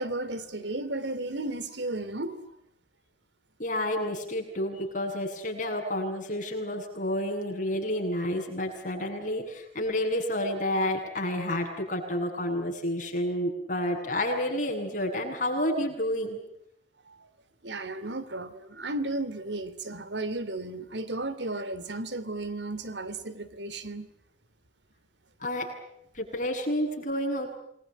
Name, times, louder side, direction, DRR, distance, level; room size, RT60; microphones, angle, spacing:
voice 1, 0.0-2.4 17.6-24.1, right 2 dB, 85° right, 2.9 m, -34 dB
voice 2, 3.6-16.4 25.4-25.7 26.1-27.6, left 1 dB, 45° left, 8.0 m, -30 dB
28.0 x 21.5 x 9.2 m
head